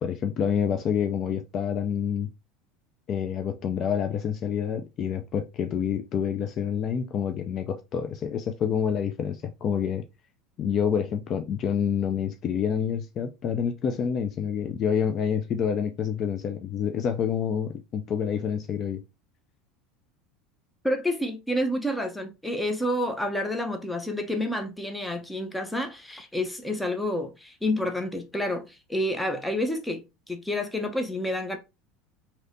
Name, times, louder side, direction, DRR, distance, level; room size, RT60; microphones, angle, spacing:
voice 1, 0.0-2.3 3.1-10.0 10.6-19.0, left 7 dB, 45° left, 0.4 m, -28 dB
voice 2, 20.8-31.6, left 1 dB, 5° left, 0.7 m, -29 dB
3.2 x 2.8 x 2.7 m
hypercardioid pair, 95°, 0 cm